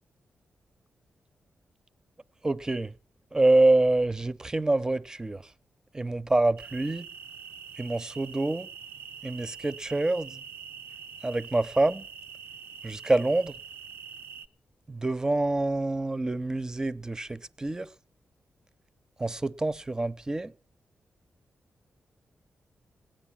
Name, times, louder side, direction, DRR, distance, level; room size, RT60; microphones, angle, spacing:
voice 1, 2.4-2.9 3.3-5.4 5.9-7.1 7.8-8.7 9.2-10.4 11.2-12.0 12.8-13.5 14.9-17.9 19.2-20.5, right 2 dB, 15° right, 0.6 m, -26 dB
sound 1, 6.6-14.5, right 7 dB, 85° right, 0.7 m, -44 dB
17.0 x 10.0 x 7.3 m
wide cardioid pair, 115°, 4 cm